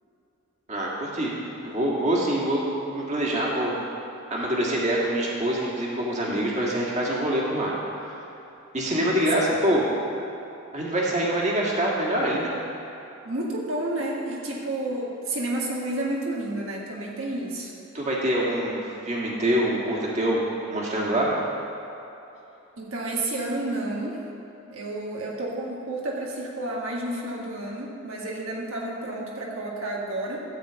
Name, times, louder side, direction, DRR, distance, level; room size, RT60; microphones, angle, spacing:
voice 1, 0.7-1.3 1.6-3.7 4.3-7.7 8.7-9.8 10.7-12.5 17.9-18.8 19.1-20.4 20.7-21.3, right 1 dB, 35° right, -4 dB, 1.7 m, -25 dB
voice 2, 13.2-17.7 22.8-24.2 24.7-30.4, right 1 dB, 80° right, -3 dB, 1.6 m, -30 dB
13.5 x 4.4 x 8.0 m, 3.0 s
head